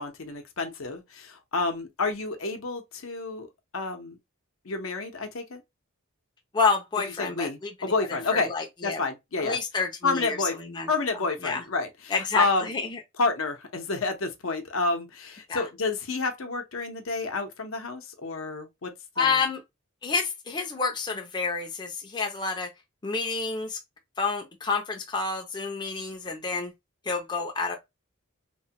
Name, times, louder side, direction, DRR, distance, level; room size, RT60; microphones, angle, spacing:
voice 1, 0.0-3.5 3.7-4.2 4.6-5.6 7.2-8.5 8.8-9.6 10.0-10.6 10.9-12.7 13.2-19.4, left 3 dB, 75° left, 0.7 m, -29 dB
voice 2, 6.5-7.7 8.1-9.0 9.4-10.9 11.4-11.6 12.1-13.0 15.5-15.7 19.2-19.6 20.0-22.7 23.0-23.8 24.2-26.7 27.0-27.8, left 4 dB, 20° left, 0.5 m, -29 dB
3.0 x 2.2 x 2.7 m
head